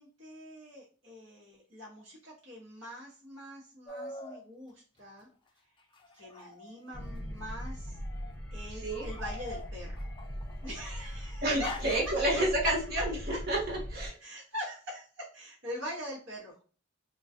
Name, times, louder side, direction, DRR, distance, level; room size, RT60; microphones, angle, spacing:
voice 1, 0.0-5.3 6.1-8.0 8.5-10.0 10.6-11.8 13.3-13.4 14.2-16.6, equal, 65° right, -5 dB, 1.1 m, -43 dB
sound 1, 3.9-4.4 5.9-7.1 7.9-8.3 8.9-11.0 11.6-12.2, left 2 dB, 25° left, 0.4 m, -44 dB
sound 2, 6.9-14.1, equal, 10° left, 0.8 m, -40 dB
voice 2, 11.4-14.1, right 1 dB, 45° right, -2 dB, 1.2 m, -30 dB
3.8 x 2.2 x 2.6 m, 0.40 s
head